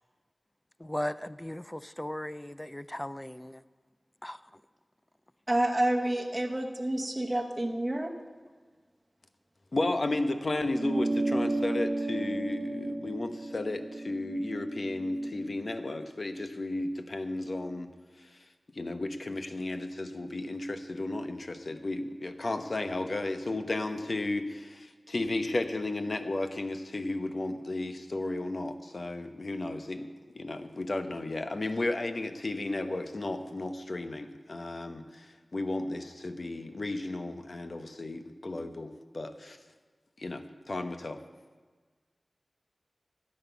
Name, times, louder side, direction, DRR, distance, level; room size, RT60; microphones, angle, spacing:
voice 1, 0.8-3.6 4.2-4.4, left 1 dB, 15° left, 0.4 m, -37 dB
voice 2, 5.5-8.1, right 1 dB, 25° right, 1.0 m, -29 dB
voice 3, 9.7-17.9 18.3-18.4 18.7-30.1 30.3-39.6 40.2-41.2, left 2 dB, 60° left, 0.9 m, -34 dB
sound 1, 10.7-15.5, right 2 dB, 65° right, 1.0 m, -33 dB
13.0 x 8.8 x 5.8 m
wide cardioid pair, 50°, 0 cm